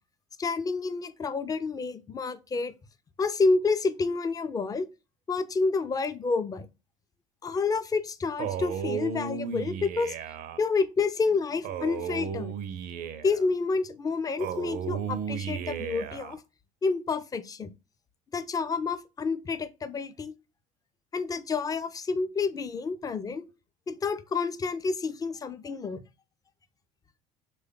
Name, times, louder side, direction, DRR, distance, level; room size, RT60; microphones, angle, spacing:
voice 1, 0.4-2.7 3.2-4.9 5.3-6.7 7.4-10.2 10.6-12.5 13.2-16.4 16.8-17.7 18.3-20.3 21.1-23.5 23.9-26.0, left 4 dB, 20° left, 0.4 m, -29 dB
Male speech man speaking, 8.4-10.6 11.6-13.5 14.4-16.4, right 7 dB, 55° right, 0.4 m, -34 dB
3.2 x 2.2 x 3.5 m
hypercardioid pair, 70°, 17 cm